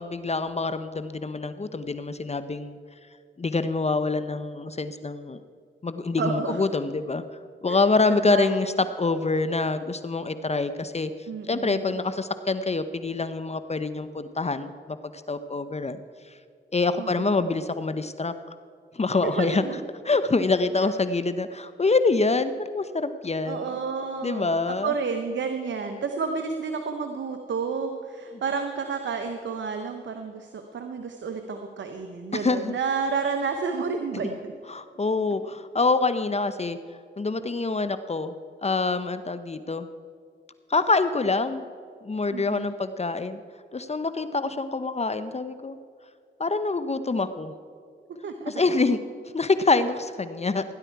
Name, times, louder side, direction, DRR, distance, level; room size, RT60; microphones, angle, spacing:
voice 1, 0.0-2.8 3.4-5.4 5.8-7.2 7.6-11.1 11.5-16.0 16.7-18.3 18.9-19.6 20.0-23.7 24.2-24.9 32.3-32.7 34.7-36.8 37.2-38.3 38.6-39.9 40.7-41.6 42.0-43.4 43.7-45.8 46.4-47.5 48.5-49.0 49.3-50.6, left 3 dB, 35° left, 11 dB, 0.7 m, -26 dB
voice 2, 6.2-6.7 7.7-7.8 8.1-8.8 11.3-12.0 17.0-17.5 19.2-19.8 23.4-34.5 42.3-42.7 48.2-48.7, right 5 dB, 80° right, 6 dB, 0.9 m, -31 dB
16.5 x 11.0 x 4.6 m, 2.2 s
cardioid pair, 45°, 19 cm